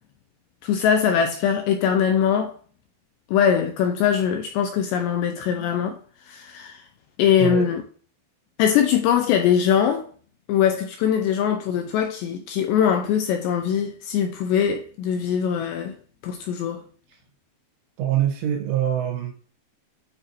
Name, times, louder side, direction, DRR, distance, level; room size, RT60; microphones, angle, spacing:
voice 1, 0.6-2.5 3.3-6.0 6.3-6.8 7.2-7.8 8.6-10.1 10.5-15.9 16.2-16.8, left 8 dB, 85° left, 2.6 m, -22 dB
voice 2, 7.4-7.7 17.1-17.2 18.0-19.3, right 11 dB, 80° right, 3.8 m, -24 dB
9.0 x 4.4 x 2.7 m
omnidirectional pair, 5.6 m